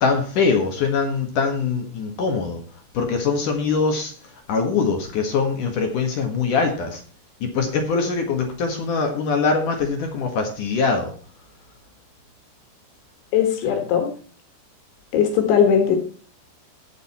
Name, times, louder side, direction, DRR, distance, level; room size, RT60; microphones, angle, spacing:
voice 1, 0.0-2.6 2.9-7.0 7.4-11.1, left 4 dB, 55° left, 4 dB, 2.6 m, -23 dB
voice 2, 13.3-14.1 15.1-16.0, left 7 dB, 80° left, 5 dB, 4.1 m, -18 dB
16.5 x 6.7 x 4.3 m, 0.42 s
omnidirectional pair, 5.3 m